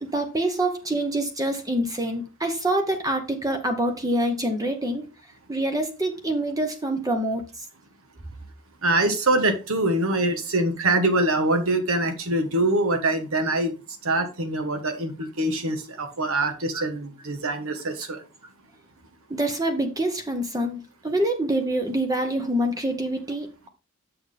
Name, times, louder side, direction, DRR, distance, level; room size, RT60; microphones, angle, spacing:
voice 1, 0.0-5.1 5.5-7.7 16.7-16.9 19.3-23.7, right 1 dB, 15° right, 0.8 m, -26 dB
voice 2, 8.8-13.7 14.0-18.2, right 2 dB, 70° right, 1.3 m, -24 dB
6.9 x 6.4 x 3.4 m
head